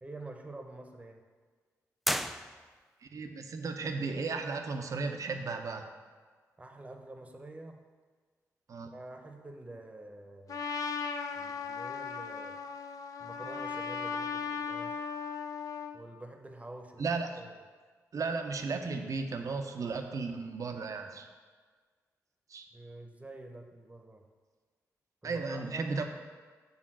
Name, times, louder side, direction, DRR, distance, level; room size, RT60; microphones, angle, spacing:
voice 1, 0.0-1.2 6.6-7.8 8.9-10.6 11.4-12.6 13.2-15.1 15.9-17.6 22.7-24.3 25.2-26.0, right 2 dB, 20° right, 4 dB, 0.9 m, -47 dB
sound 1, 2.0-3.0, equal, ahead, 0.3 m, -34 dB
voice 2, 3.0-5.9 8.7-8.9 17.0-17.4 18.1-21.3 22.5-22.7 25.2-26.1, right 4 dB, 60° right, 5 dB, 0.7 m, -35 dB
Trumpet, 10.5-16.0, left 6 dB, 65° left, 0.5 m, -37 dB
6.4 x 3.6 x 6.1 m, 1.5 s
supercardioid pair, 55°, 6 cm